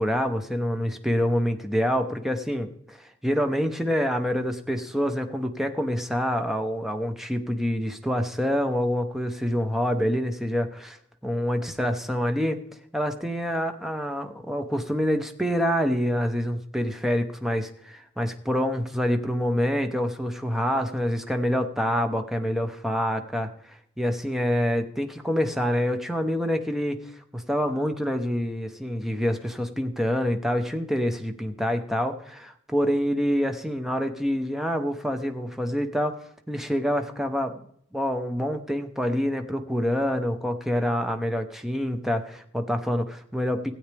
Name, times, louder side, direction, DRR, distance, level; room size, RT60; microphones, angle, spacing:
voice 1, 0.0-11.0 11.2-12.6 12.9-36.2 36.5-37.6 37.9-43.7, equal, ahead, 6 dB, 0.9 m, -26 dB
16.0 x 8.7 x 3.4 m, 0.67 s
head